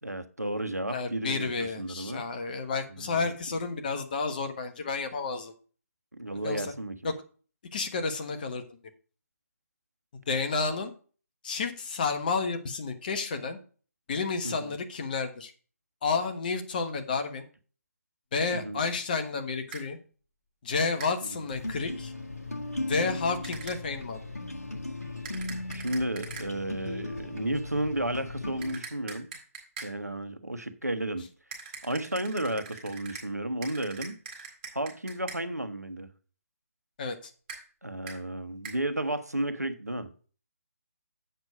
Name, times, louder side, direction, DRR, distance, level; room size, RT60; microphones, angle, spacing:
voice 1, 0.0-2.3 2.9-3.3 6.1-7.0 14.4-14.7 18.5-18.8 21.2-21.4 25.7-29.3 29.8-31.3 31.8-34.1 34.7-36.1 37.8-40.1, right 1 dB, 90° right, 1.2 m, -33 dB
voice 2, 0.9-5.5 6.4-6.7 7.0-7.1 7.7-8.6 10.3-10.9 11.4-13.6 14.1-15.5 16.0-17.5 18.3-20.0 20.6-22.1 22.9-24.2 37.0-37.2, left 4 dB, 35° left, 1.3 m, -31 dB
sound 1, 19.7-19.8 21.0-21.1 23.4-23.8 25.2-26.5 28.6-29.9 31.5-33.3 33.6-35.4 37.5-37.6 38.1-38.2 38.6-38.8, right 5 dB, 30° right, 3.9 m, -42 dB
sound 2, 21.5-28.7, left 2 dB, 80° left, 1.7 m, -37 dB
8.0 x 6.3 x 4.9 m
figure-of-eight pair, 145°, 8 cm